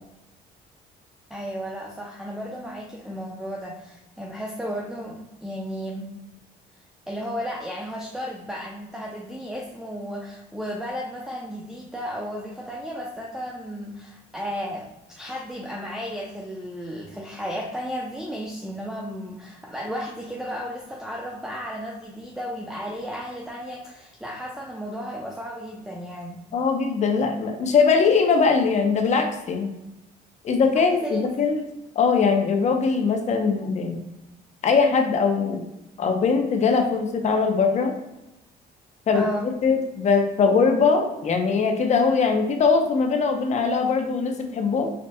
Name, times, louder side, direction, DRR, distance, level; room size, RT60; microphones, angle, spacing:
voice 1, 1.3-6.1 7.1-26.4 30.8-31.3 39.1-39.5, equal, 5° right, -2 dB, 0.6 m, -34 dB
voice 2, 26.5-29.7 30.4-31.6 32.0-34.0 34.6-35.7 36.0-37.9 39.1-44.9, left 5 dB, 45° left, 4 dB, 0.8 m, -21 dB
5.1 x 3.9 x 2.2 m, 0.94 s
cardioid pair, 110°, 17 cm